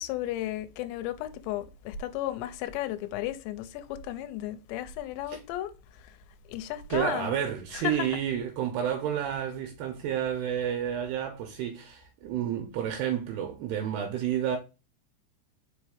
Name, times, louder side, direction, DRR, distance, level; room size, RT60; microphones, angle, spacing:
voice 1, 0.0-6.2 6.5-7.4 7.7-8.2, left 12 dB, 80° left, 2.8 m, -34 dB
voice 2, 6.9-14.6, right 9 dB, 80° right, 2.5 m, -30 dB
5.5 x 5.0 x 3.4 m
omnidirectional pair, 5.4 m